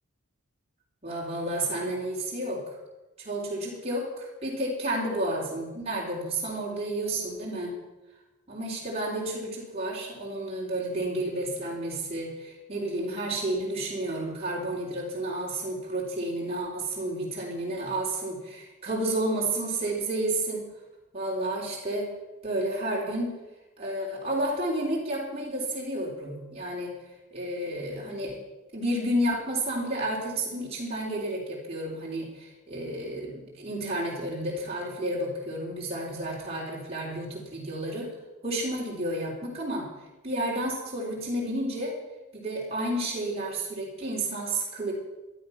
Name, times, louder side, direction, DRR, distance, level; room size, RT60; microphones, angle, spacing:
voice 1, 1.0-2.6 3.2-7.7 8.5-20.7 21.1-22.1 22.4-23.3 23.8-26.9 27.3-28.4 28.7-38.1 38.4-39.9 40.2-41.9 42.3-44.9, right 1 dB, 25° right, -4 dB, 3.4 m, -31 dB
15.0 x 11.5 x 5.7 m, 1.0 s
head